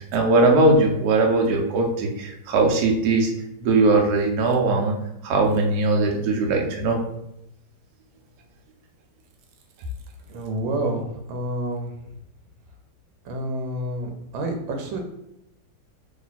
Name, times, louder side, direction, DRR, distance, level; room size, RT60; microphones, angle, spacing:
voice 1, 0.1-3.3 3.6-4.9 5.2-7.0, right 2 dB, 65° right, 1 dB, 1.2 m, -20 dB
voice 2, 10.3-11.9 13.2-15.0, right 1 dB, 85° right, 3 dB, 1.4 m, -28 dB
3.2 x 3.0 x 4.1 m, 0.82 s
omnidirectional pair, 2.0 m